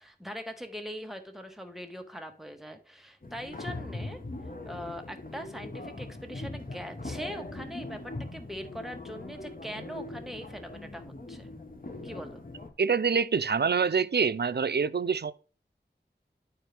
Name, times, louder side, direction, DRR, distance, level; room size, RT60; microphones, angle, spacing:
voice 1, 0.0-4.2 4.6-11.5 12.0-12.4, equal, ahead, 1.4 m, -41 dB
sound 1, 3.2-12.7, left 2 dB, 50° left, 1.3 m, -41 dB
voice 2, 12.8-15.3, right 5 dB, 65° right, 0.5 m, -26 dB
11.0 x 4.6 x 3.3 m
wide cardioid pair, 50°, 19 cm